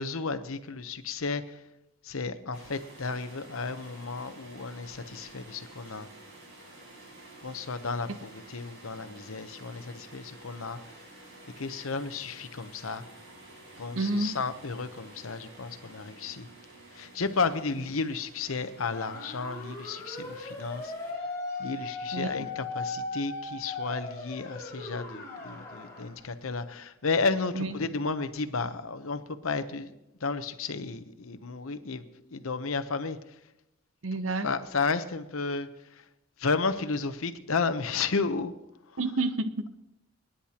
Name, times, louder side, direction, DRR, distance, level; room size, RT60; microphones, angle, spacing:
voice 1, 0.0-1.6 2.0-6.1 7.4-10.8 11.6-13.0 13.8-16.5 16.9-20.9 21.6-29.9 30.2-33.2 34.4-36.0 36.4-38.5, left 4 dB, 80° left, 11 dB, 0.8 m, -33 dB
sound 1, 2.5-21.1, right 2 dB, 55° right, 4.8 m, -51 dB
voice 2, 14.0-14.4 22.1-22.5 27.5-27.8 34.0-34.5 39.0-39.7, right 2 dB, 75° right, 10 dB, 0.9 m, -29 dB
sound 2, 18.9-26.1, left 3 dB, 15° left, 5.0 m, -38 dB
28.0 x 10.0 x 2.9 m, 0.91 s
head